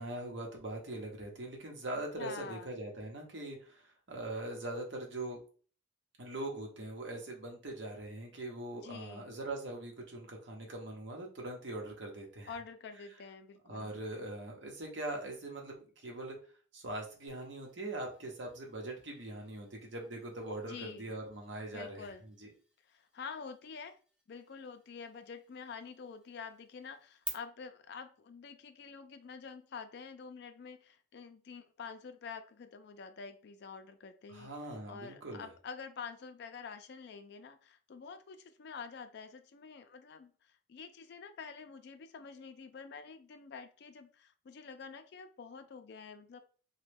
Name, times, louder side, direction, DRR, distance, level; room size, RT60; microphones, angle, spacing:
voice 1, 0.0-5.4 6.2-12.5 13.6-16.4 16.7-22.5 34.3-35.5, right 2 dB, 65° right, 1 dB, 0.9 m, -42 dB
voice 2, 2.1-2.7 8.8-9.3 12.5-14.0 20.7-21.1 21.7-22.2 22.8-24.0 24.3-34.5 34.9-46.4, left 5 dB, 60° left, 8 dB, 0.4 m, -47 dB
sound 1, 17.3-27.3, right 1 dB, 5° right, 0.4 m, -54 dB
3.0 x 2.2 x 3.3 m, 0.41 s
head